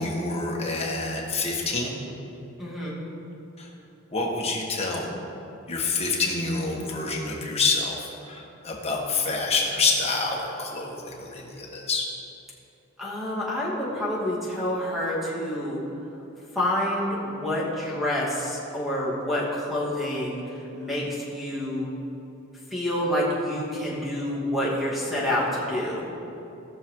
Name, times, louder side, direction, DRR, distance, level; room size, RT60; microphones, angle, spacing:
voice 1, 0.0-2.0 3.6-3.7 4.1-5.1 5.7-8.0 8.2-12.0, left 3 dB, 30° left, -2 dB, 1.6 m, -27 dB
voice 2, 2.6-3.0 13.0-15.8 16.5-21.9 22.7-26.1, left 1 dB, ahead, -6 dB, 2.5 m, -28 dB
18.0 x 6.5 x 3.8 m, 2.9 s
head